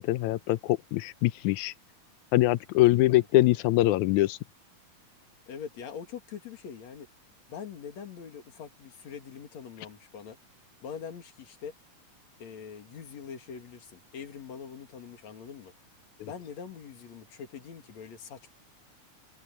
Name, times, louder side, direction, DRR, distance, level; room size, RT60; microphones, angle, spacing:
voice 1, 0.0-1.7 2.3-4.4, left 17 dB, 80° left, 1.9 m, -23 dB
voice 2, 2.8-3.3 5.5-7.1 7.5-10.4 10.8-11.7 12.4-15.7 16.2-18.5, left 7 dB, 60° left, 3.3 m, -43 dB
omnidirectional pair, 3.8 m